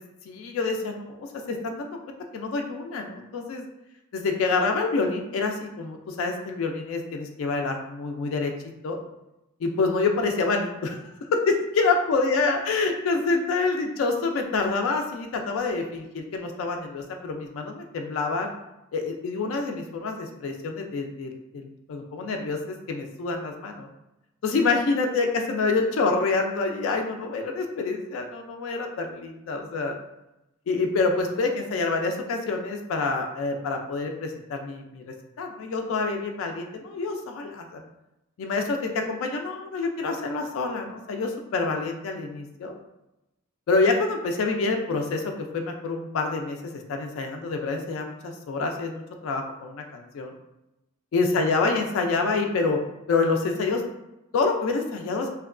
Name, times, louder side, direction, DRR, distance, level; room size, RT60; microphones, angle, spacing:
voice 1, 0.3-2.0 2.3-3.6 4.1-8.5 8.8-9.0 9.6-11.0 11.3-18.5 18.9-23.9 24.4-30.0 30.7-35.0 35.4-37.8 38.4-42.8 43.7-45.2 45.5-50.3 51.1-52.8 53.1-53.8 54.3-55.3, left 3 dB, 65° left, 4 dB, 0.3 m, -27 dB
2.8 x 2.2 x 2.4 m, 0.93 s
head